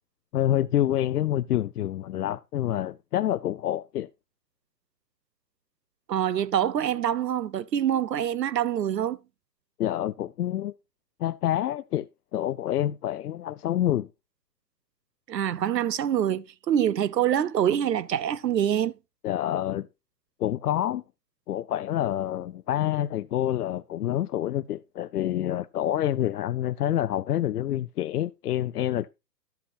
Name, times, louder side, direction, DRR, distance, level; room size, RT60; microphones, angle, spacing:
voice 1, 0.3-4.1 9.8-10.7 11.2-12.1 12.3-14.1 19.2-19.9 20.4-21.0 21.5-29.1, left 12 dB, 70° left, 0.5 m, -27 dB
voice 2, 6.1-9.2 15.3-18.9, right 10 dB, 85° right, 0.8 m, -25 dB
11.5 x 8.0 x 2.7 m
hypercardioid pair, 150°, 49 cm